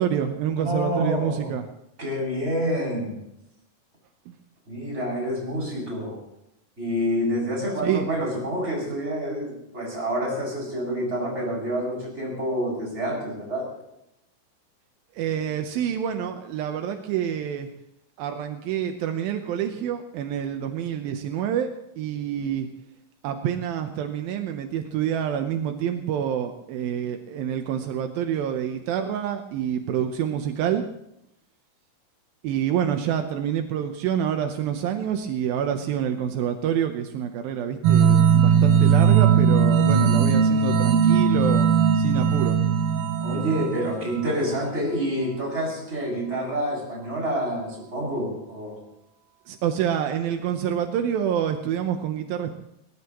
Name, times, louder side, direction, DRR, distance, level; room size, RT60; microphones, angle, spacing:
voice 1, 0.0-1.6 4.3-4.4 7.8-8.1 15.2-17.7 18.2-21.7 22.0-22.7 23.2-30.9 32.4-41.7 41.9-42.6 49.5-52.5, right 9 dB, 80° right, 6 dB, 2.7 m, -27 dB
voice 2, 0.6-1.5 2.0-3.2 4.7-6.2 6.8-13.7 43.2-48.8, equal, 15° right, -3 dB, 7.1 m, -28 dB
sound 1, 37.8-44.4, right 7 dB, 65° right, 1.8 m, -19 dB
22.5 x 19.0 x 3.1 m, 0.82 s
omnidirectional pair, 4.2 m